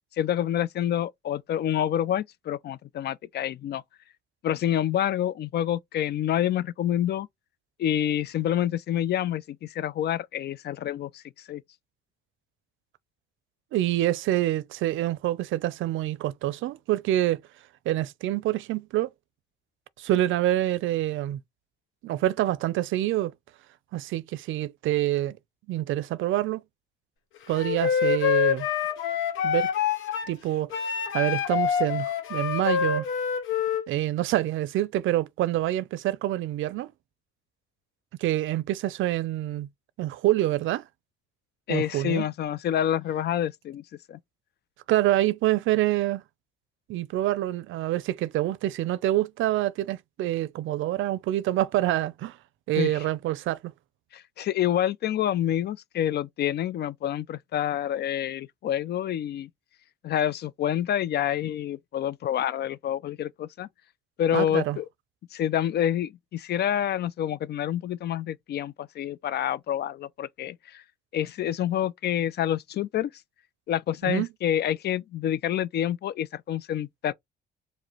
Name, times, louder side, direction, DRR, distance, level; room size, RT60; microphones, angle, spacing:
voice 1, 0.2-3.8 4.4-7.3 7.8-11.2 11.5-11.6 41.7-43.8 44.1-44.2 52.8-53.0 54.1-59.5 60.0-63.7 64.2-64.9 65.3-70.8 71.1-73.1 73.7-77.1, left 11 dB, 55° left, 0.4 m, -27 dB
voice 2, 13.7-17.4 17.9-19.1 20.0-21.4 22.0-23.3 23.9-25.4 25.7-26.6 27.5-28.7 29.4-29.7 30.3-33.1 33.9-36.9 38.2-39.7 40.0-40.8 41.7-42.3 44.9-46.2 46.9-52.4 52.7-53.7 64.3-64.8 74.0-74.3, right 14 dB, 80° right, 0.5 m, -26 dB
Wind instrument woodwind instrument, 27.5-30.3 30.7-33.8, left 8 dB, 85° left, 1.0 m, -26 dB
4.7 x 2.2 x 3.0 m
cardioid pair, 90°, 20 cm